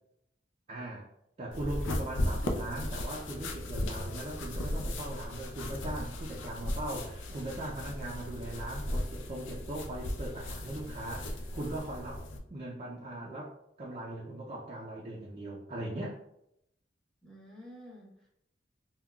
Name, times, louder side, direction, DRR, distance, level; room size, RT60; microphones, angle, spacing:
voice 1, 0.7-1.1 1.4-12.2 12.5-16.2, right 1 dB, 35° right, -5 dB, 0.4 m, -39 dB
sound 1, 1.5-12.4, left 1 dB, 85° left, 0.4 m, -36 dB
voice 2, 17.2-18.3, equal, 5° left, -5 dB, 0.9 m, -51 dB
3.6 x 2.2 x 2.2 m, 0.78 s
head